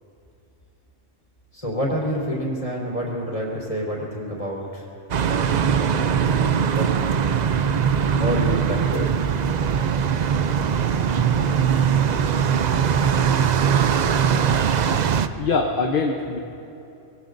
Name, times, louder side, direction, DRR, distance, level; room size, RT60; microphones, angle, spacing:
voice 1, 1.5-4.9 5.2-6.9 8.1-9.1, equal, 25° left, -3 dB, 3.9 m, -28 dB
sound 1, 5.1-15.3, right 7 dB, 60° right, 0.4 m, -21 dB
voice 2, 15.3-16.4, left 4 dB, 50° left, 2 dB, 0.9 m, -23 dB
24.5 x 21.0 x 2.6 m, 2.8 s
omnidirectional pair, 1.3 m